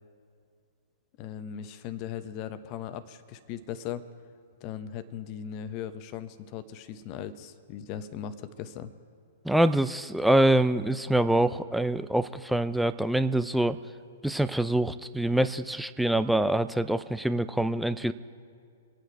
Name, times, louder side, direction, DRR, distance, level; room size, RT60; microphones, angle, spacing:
voice 1, 1.2-4.0 4.6-8.9, left 9 dB, 35° left, 12 dB, 1.0 m, -38 dB
voice 2, 9.4-13.8 14.2-18.1, right 1 dB, ahead, 12 dB, 0.5 m, -25 dB
25.5 x 9.0 x 4.7 m, 2.3 s
figure-of-eight pair, 110°, 0 cm